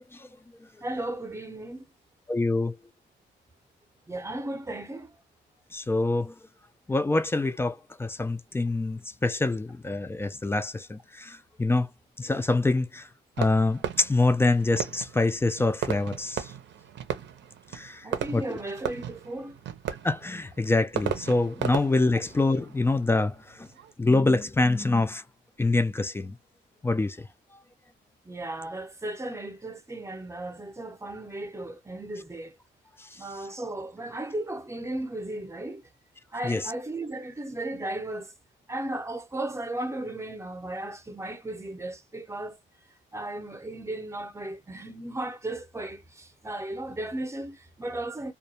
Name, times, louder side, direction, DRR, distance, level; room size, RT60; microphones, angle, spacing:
voice 1, 0.8-1.8 4.1-5.1 18.0-19.6 28.2-32.5 33.1-35.8 36.3-38.3 38.7-42.6 43.1-48.3, right 1 dB, 15° right, 0.7 m, -35 dB
voice 2, 2.3-2.8 5.7-6.3 6.9-11.9 12.2-13.1 13.4-16.5 17.7-18.1 18.3-18.6 20.0-23.7 24.0-25.2 25.6-26.4 26.8-27.3 33.0-33.1 36.4-36.7, left 2 dB, 10° left, 0.3 m, -25 dB
Fireworks, 13.4-23.9, right 9 dB, 65° right, 0.6 m, -36 dB
2.3 x 2.2 x 2.7 m
cardioid pair, 90°, 20 cm